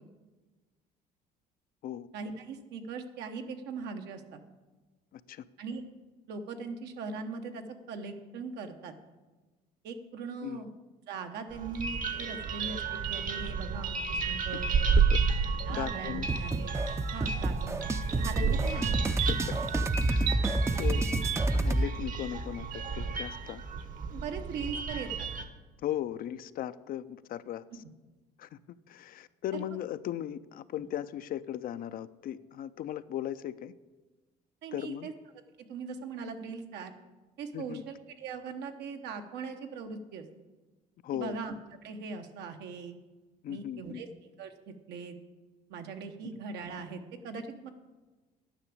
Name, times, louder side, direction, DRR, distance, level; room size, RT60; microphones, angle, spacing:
voice 1, 2.1-4.4 5.6-5.8 6.3-9.0 9.8-10.7 11.1-14.7 15.7-16.7 17.1-17.8 18.1-18.9 24.1-25.3 34.6-35.1 35.7-36.9 37.4-40.2 41.1-41.5 41.8-43.0 43.5-44.1 44.4-45.2 45.7-47.7, right 5 dB, 80° right, 6 dB, 1.1 m, -40 dB
voice 2, 5.1-5.4 10.4-10.6 14.2-14.6 15.1-16.3 18.4-18.8 19.3-19.6 20.1-20.5 20.8-21.1 21.5-23.6 25.8-27.8 28.4-28.6 28.9-33.7 34.7-35.1 37.5-37.8 41.0-41.4 43.4-44.0, left 11 dB, 60° left, 14 dB, 0.5 m, -38 dB
sound 1, 11.5-25.4, right 5 dB, 50° right, 1.0 m, -32 dB
sound 2, 16.3-21.9, right 2 dB, 15° right, 0.5 m, -29 dB
9.9 x 5.9 x 8.5 m, 1.2 s
cardioid pair, 110°, 17 cm